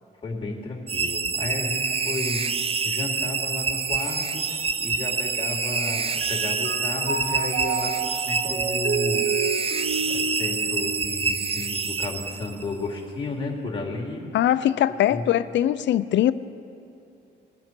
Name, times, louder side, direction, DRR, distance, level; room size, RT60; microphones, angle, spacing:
voice 1, 0.2-2.4 2.8-9.3 10.0-14.2 15.1-15.2, left 2 dB, 25° left, -3 dB, 2.6 m, -33 dB
sound 1, 0.9-12.7, right 5 dB, 30° right, 0.5 m, -27 dB
Mallet percussion, 4.7-5.8 6.2-11.6, right 4 dB, 70° right, 1.1 m, -31 dB
voice 2, 14.3-16.3, left 12 dB, 65° left, 15 dB, 0.5 m, -21 dB
20.5 x 7.8 x 4.5 m, 2.8 s
cardioid pair, 90°, 20 cm